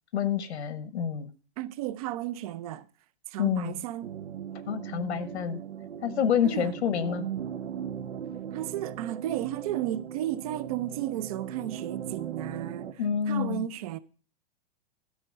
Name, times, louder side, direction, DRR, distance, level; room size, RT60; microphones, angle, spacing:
voice 1, 0.1-1.3 3.4-3.7 4.7-5.6 6.0-7.3 13.0-13.7, left 8 dB, 90° left, 1.5 m, -28 dB
voice 2, 1.6-2.9 3.3-4.1 6.4-6.7 8.5-14.0, right 13 dB, 35° right, 0.5 m, -34 dB
sound 1, 4.0-12.9, right 9 dB, 90° right, 1.2 m, -38 dB
12.5 x 4.5 x 7.7 m
hypercardioid pair, 160°, 33 cm